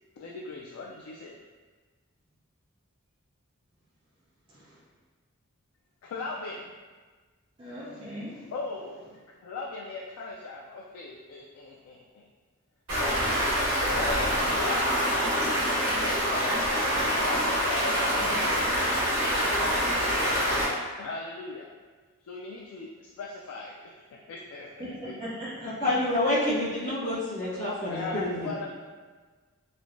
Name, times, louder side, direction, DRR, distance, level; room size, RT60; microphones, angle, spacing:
voice 1, 0.2-1.4 6.0-6.7 8.5-9.1 9.4-12.2 13.0-15.5 16.0-18.6 21.0-21.7 22.2-23.8 24.1-25.1 27.9-28.7, left 3 dB, 85° left, -2 dB, 0.3 m, -38 dB
voice 2, 4.5-4.8 7.6-8.5 24.8-25.9, equal, 25° right, -9 dB, 0.4 m, -39 dB
Stream, 12.9-20.7, equal, 75° right, 1.4 m, -26 dB
voice 3, 25.6-28.5, left 1 dB, 35° left, -13 dB, 0.8 m, -28 dB
3.1 x 2.1 x 2.5 m, 1.4 s
head